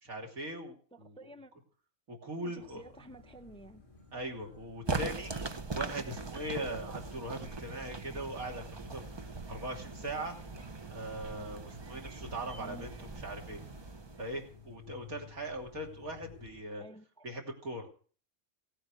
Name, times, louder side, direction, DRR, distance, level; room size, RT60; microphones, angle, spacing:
voice 1, 0.0-1.2 2.1-2.8 4.1-5.3 5.7-10.3 10.9-13.6 14.2-16.8 17.2-17.9, right 1 dB, 85° right, 3.4 m, -40 dB
voice 2, 0.9-1.5 2.4-3.8 12.6-12.9 16.8-17.2, right 1 dB, 5° left, 0.8 m, -51 dB
sound 1, 2.6-16.6, left 5 dB, 20° left, 3.0 m, -56 dB
sound 2, 4.9-14.7, right 3 dB, 25° right, 0.6 m, -41 dB
17.0 x 8.9 x 6.3 m
omnidirectional pair, 1.5 m